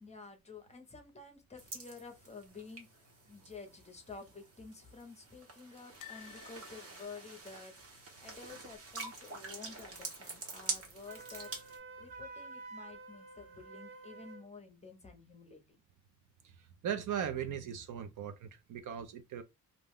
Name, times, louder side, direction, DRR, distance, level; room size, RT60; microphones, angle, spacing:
voice 1, 0.0-11.5 12.0-15.6, left 4 dB, 20° left, 0.7 m, -51 dB
sound 1, 1.6-11.8, right 3 dB, 40° right, 1.0 m, -46 dB
sound 2, 6.0-9.1 9.3-9.5 9.8-9.9 11.1-11.6 12.2-12.3, left 13 dB, 60° left, 0.5 m, -56 dB
Wind instrument woodwind instrument, 11.1-14.5, right 3 dB, 85° right, 1.1 m, -49 dB
voice 2, 16.8-19.4, right 8 dB, 60° right, 0.5 m, -38 dB
2.6 x 2.2 x 3.4 m
cardioid pair, 140°, 35 cm